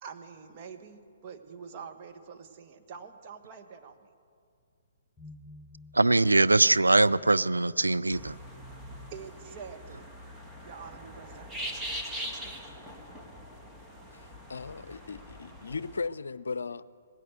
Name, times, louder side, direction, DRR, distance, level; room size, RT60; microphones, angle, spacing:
voice 1, 0.0-4.1 9.1-10.1 10.6-11.8 12.2-12.6, right 6 dB, 35° right, 1.7 m, -46 dB
sound 1, 5.2-10.9, left 2 dB, 20° left, 1.1 m, -55 dB
voice 2, 5.9-8.4, right 2 dB, 85° right, 0.5 m, -22 dB
sound 2, 8.1-16.1, equal, 10° right, 2.0 m, -42 dB
voice 3, 14.1-16.8, left 4 dB, 70° left, 0.6 m, -37 dB
19.5 x 16.5 x 8.0 m
figure-of-eight pair, 125°, 0 cm